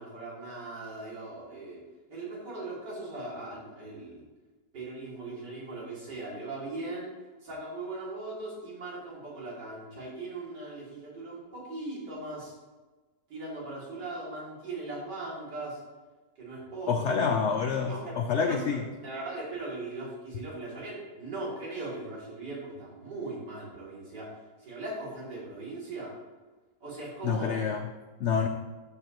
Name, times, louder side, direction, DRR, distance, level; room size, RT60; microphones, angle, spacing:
voice 1, 0.0-1.8 2.1-4.2 4.7-7.1 7.4-12.5 13.3-15.8 16.4-17.4 17.9-18.1 18.5-18.6 19.0-26.1 26.8-27.5, right 2 dB, 80° right, -6 dB, 3.4 m, -39 dB
voice 2, 16.9-18.8 27.2-27.8 28.2-28.5, left 6 dB, 90° left, 5 dB, 0.6 m, -27 dB
12.5 x 5.1 x 3.0 m, 1.2 s
omnidirectional pair, 1.8 m